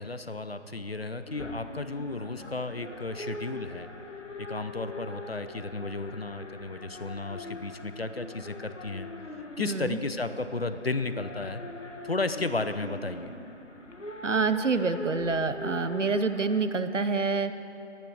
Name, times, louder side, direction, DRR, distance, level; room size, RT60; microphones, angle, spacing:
voice 1, 0.0-3.9 4.5-9.1 9.6-11.6 12.0-13.3, left 3 dB, 55° left, 10 dB, 0.7 m, -33 dB
sound 1, 1.3-16.7, left 2 dB, 85° left, 1.5 m, -42 dB
voice 2, 9.6-10.0 14.2-17.5, right 4 dB, 85° right, 11 dB, 0.9 m, -27 dB
12.0 x 11.0 x 6.2 m, 2.8 s
figure-of-eight pair, 175°, 36 cm